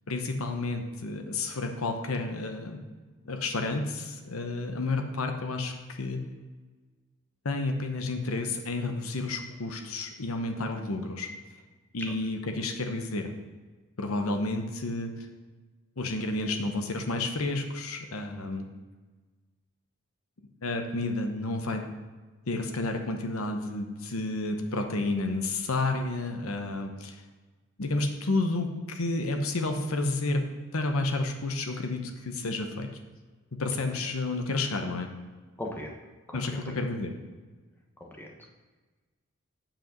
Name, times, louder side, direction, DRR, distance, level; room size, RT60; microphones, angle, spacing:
voice 1, 0.1-2.8 3.2-5.7 6.0-6.2 7.4-11.3 11.9-13.3 14.0-15.1 16.0-18.6 20.6-21.8 22.5-27.2 27.8-30.4 30.7-32.9 33.6-35.1 36.3-37.1, left 2 dB, 80° left, 5 dB, 0.9 m, -31 dB
voice 2, 35.6-36.0 36.3-36.7 38.0-38.5, left 1 dB, 10° left, 0 dB, 1.0 m, -39 dB
9.0 x 5.1 x 5.2 m, 1.3 s
head